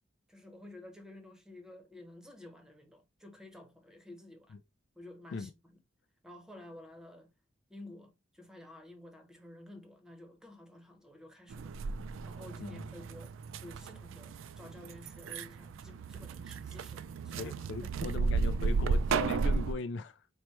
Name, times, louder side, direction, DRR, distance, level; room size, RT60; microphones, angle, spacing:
voice 1, 0.3-4.6 5.0-5.8 6.2-7.3 7.7-11.8 12.2-17.9, left 1 dB, 5° right, 0.7 m, -52 dB
sound 1, 11.5-19.7, right 4 dB, 90° right, 0.3 m, -34 dB
voice 2, 17.4-20.3, left 4 dB, 70° left, 0.4 m, -39 dB
4.5 x 2.1 x 4.3 m
head